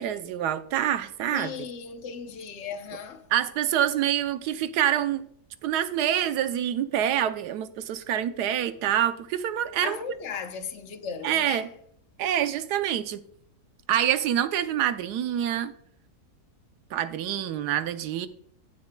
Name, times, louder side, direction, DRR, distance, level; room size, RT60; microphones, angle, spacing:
voice 1, 0.0-1.5 3.3-5.2 5.6-10.0 11.2-11.7 12.2-13.2 13.9-15.7 16.9-18.3, right 10 dB, 90° right, 1.2 m, -26 dB
voice 2, 1.3-3.2 9.8-11.7, left 6 dB, 55° left, 1.0 m, -36 dB
16.0 x 7.0 x 2.2 m
omnidirectional pair, 1.7 m